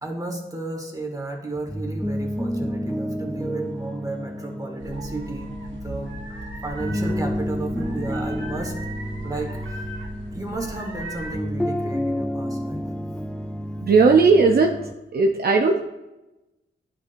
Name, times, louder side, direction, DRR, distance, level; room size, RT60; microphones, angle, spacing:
voice 1, 0.0-6.1 6.6-8.7 9.2-9.9 10.3-12.9, right 2 dB, 20° right, 1 dB, 1.8 m, -33 dB
sound 1, 1.6-14.9, equal, 5° left, 0.4 m, -30 dB
sound 2, 4.8-11.3, right 1 dB, 85° right, 1.0 m, -37 dB
voice 2, 13.8-14.7 15.1-15.8, right 4 dB, 55° right, 2 dB, 0.6 m, -16 dB
10.0 x 4.5 x 2.6 m, 1.0 s
cardioid pair, 60°, 19 cm